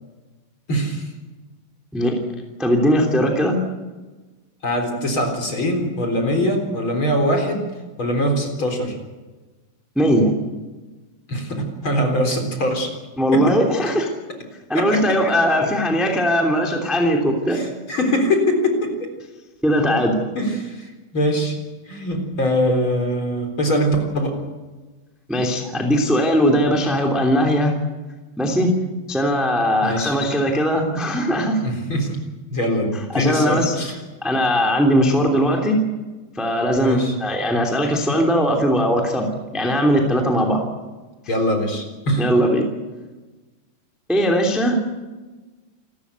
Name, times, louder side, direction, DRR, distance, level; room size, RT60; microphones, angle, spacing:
voice 1, 0.7-1.1 4.6-7.7 8.0-8.9 11.3-12.9 13.3-13.4 14.7-15.2 17.5-19.1 20.4-21.6 21.9-24.3 29.8-30.2 31.6-32.2 32.5-34.0 36.8-37.1 41.3-42.3, equal, 30° left, 3 dB, 4.1 m, -22 dB
voice 2, 2.6-3.6 9.9-10.3 13.2-14.1 14.7-17.6 19.6-20.2 25.3-27.8 28.4-28.7 29.1-31.6 33.1-33.7 34.2-35.8 36.3-40.6 42.2-42.7 44.1-44.8, equal, ahead, 1 dB, 2.0 m, -19 dB
28.5 x 14.0 x 8.3 m, 1.2 s
omnidirectional pair, 5.0 m